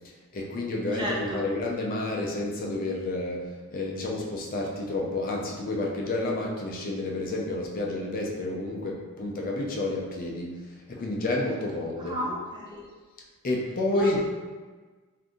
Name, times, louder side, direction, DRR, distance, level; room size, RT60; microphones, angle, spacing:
voice 1, 0.0-12.2 13.4-14.2, left 2 dB, 40° left, -1 dB, 0.4 m, -30 dB
voice 2, 0.9-1.4 12.0-12.9 13.9-14.2, left 1 dB, 20° right, -4 dB, 0.5 m, -32 dB
2.6 x 2.6 x 3.6 m, 1.4 s
head